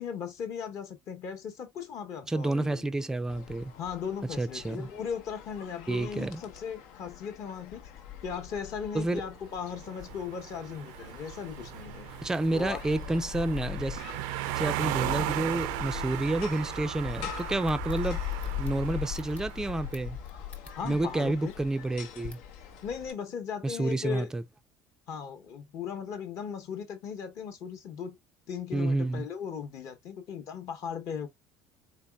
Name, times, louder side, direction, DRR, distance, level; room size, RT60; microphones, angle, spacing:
voice 1, 0.0-3.0 3.8-7.9 8.2-12.1 12.5-12.8 20.7-21.5 22.8-24.3 25.1-28.2 28.5-31.3, left 7 dB, 45° left, 0.9 m, -37 dB
voice 2, 2.3-3.7 4.4-4.9 5.9-6.4 8.9-9.2 12.2-14.0 14.6-18.2 18.6-20.2 20.8-22.4 23.6-24.4 28.7-29.3, right 2 dB, 5° right, 0.4 m, -29 dB
sound 1, 3.3-23.1, left 10 dB, 85° left, 0.9 m, -41 dB
sound 2, 9.6-19.9, right 14 dB, 85° right, 0.5 m, -37 dB
sound 3, 17.1-21.1 21.4-21.6 22.3-22.5, left 3 dB, 15° left, 0.7 m, -53 dB
4.0 x 3.9 x 2.2 m
cardioid pair, 160°, 8 cm